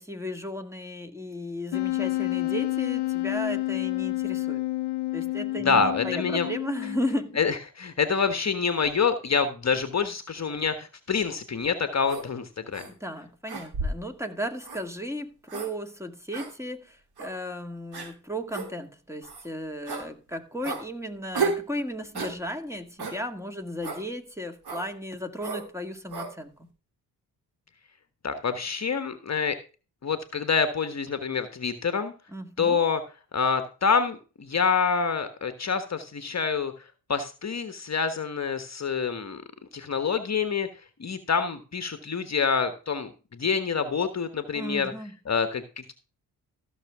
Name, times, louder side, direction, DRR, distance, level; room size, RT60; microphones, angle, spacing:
voice 1, 0.0-4.6 5.1-7.4 12.9-26.7 32.3-32.8 44.5-45.1, equal, 5° right, 2.0 m, -35 dB
Wind instrument woodwind instrument, 1.7-7.4, left 18 dB, 65° left, 0.8 m, -29 dB
voice 2, 5.6-6.5 7.4-12.8 28.2-29.6 30.0-32.1 32.6-33.0 33.3-36.7 37.1-39.4 39.7-40.7 41.0-44.9 45.2-45.9, left 5 dB, 35° left, 1.3 m, -26 dB
sound 1, 12.1-12.3 12.7-12.9 13.5-14.1 14.6-14.8 15.5-15.7 16.3-16.5 17.2-17.3 17.9-18.1 18.5-18.7 19.2-19.5 19.9-20.1 20.6-20.8 21.3-21.6 22.1-22.4 23.0-23.2 23.8-24.0 24.6-24.9 25.4-25.7 26.1-26.3, right 4 dB, 55° right, 3.2 m, -32 dB
14.5 x 6.6 x 3.6 m
hypercardioid pair, 50°, 45 cm